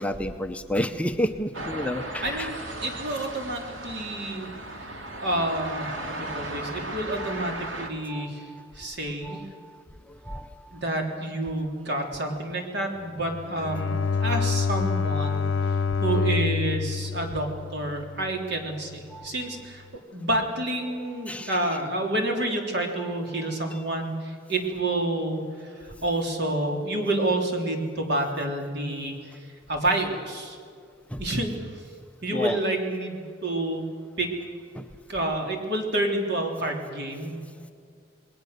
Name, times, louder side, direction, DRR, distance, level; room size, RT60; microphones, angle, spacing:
voice 1, 0.0-2.5 7.2-7.4 8.1-8.7 9.2-9.8 10.1-10.8 14.2-14.4 15.2-15.4 19.1-19.3 21.3-21.6 23.0-23.1 31.1-31.2 32.3-32.6 34.7-34.8, equal, 5° left, 7 dB, 0.8 m, -31 dB
sound 1, 1.5-7.9, right 2 dB, 85° right, 2.7 m, -36 dB
voice 2, 2.2-4.5 4.9-5.9 6.2-8.4 8.7-9.4 10.7-15.4 16.0-19.8 20.1-25.4 25.8-29.2 29.7-30.6 31.2-31.5 32.2-33.8 34.2-34.3 35.1-37.4, right 1 dB, 60° right, 2 dB, 3.5 m, -29 dB
Bowed string instrument, 13.2-18.4, left 5 dB, 85° left, 0.7 m, -27 dB
28.5 x 20.5 x 6.7 m, 2.2 s
head